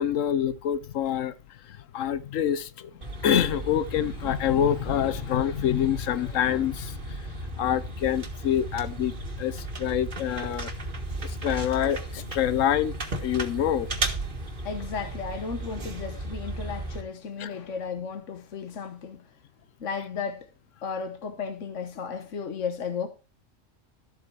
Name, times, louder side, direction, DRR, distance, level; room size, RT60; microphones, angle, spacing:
voice 1, 0.0-1.3 1.9-2.9 3.2-7.2 7.6-9.1 9.4-10.7 11.2-12.9 13.2-13.9 17.4-17.5, left 10 dB, 85° left, 1.1 m, -26 dB
sound 1, 3.0-17.0, right 2 dB, 40° right, 1.9 m, -35 dB
voice 2, 14.6-19.2 19.8-20.5 20.8-23.1, left 6 dB, 70° left, 1.4 m, -34 dB
13.0 x 8.0 x 4.7 m
omnidirectional pair, 1.3 m